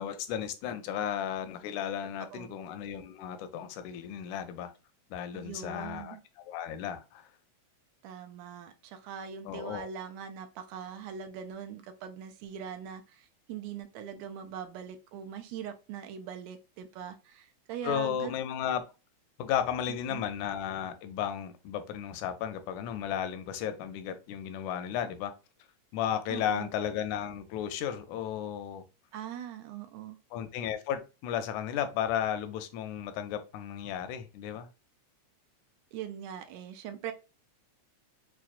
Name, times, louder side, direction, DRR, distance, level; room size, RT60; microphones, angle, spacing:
voice 1, 0.0-4.7 5.1-7.3 9.5-9.9 17.8-18.8 19.4-25.3 25.9-28.8 30.3-34.7, left 9 dB, 80° left, 9 dB, 1.9 m, -34 dB
voice 2, 5.3-6.2 8.0-18.3 20.1-20.3 26.3-26.7 29.1-30.2 35.9-37.1, right 8 dB, 80° right, 8 dB, 1.6 m, -41 dB
5.8 x 2.3 x 2.4 m, 0.30 s
omnidirectional pair, 3.5 m